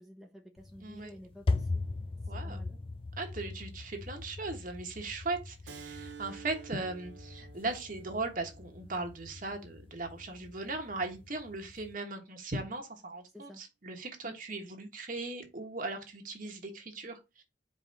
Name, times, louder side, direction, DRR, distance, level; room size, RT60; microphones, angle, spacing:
voice 1, 0.0-1.8 2.4-2.8 13.3-13.6 14.2-14.4, left 1 dB, ahead, 0.8 m, -50 dB
sound 1, 0.6-11.9, left 3 dB, 30° left, 0.4 m, -40 dB
voice 2, 0.8-1.1 2.3-2.6 3.2-17.4, right 3 dB, 45° right, 1.3 m, -38 dB
Keyboard (musical), 5.7-10.8, right 6 dB, 75° right, 0.9 m, -52 dB
5.0 x 3.4 x 5.6 m
head